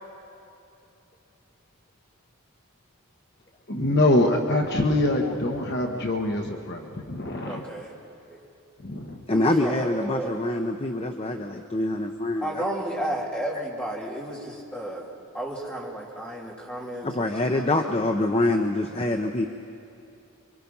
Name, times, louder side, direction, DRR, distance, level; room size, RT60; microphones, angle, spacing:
voice 1, 3.7-7.6 8.8-9.2, left 1 dB, 50° left, 2 dB, 1.4 m, -24 dB
voice 2, 7.4-7.9 8.3-8.4 9.3-10.3 12.4-17.9, right 1 dB, 5° left, -5 dB, 3.3 m, -33 dB
voice 3, 9.3-12.6 17.0-19.5, left 1 dB, 25° left, 5 dB, 0.8 m, -25 dB
27.0 x 23.5 x 5.5 m, 2.8 s
head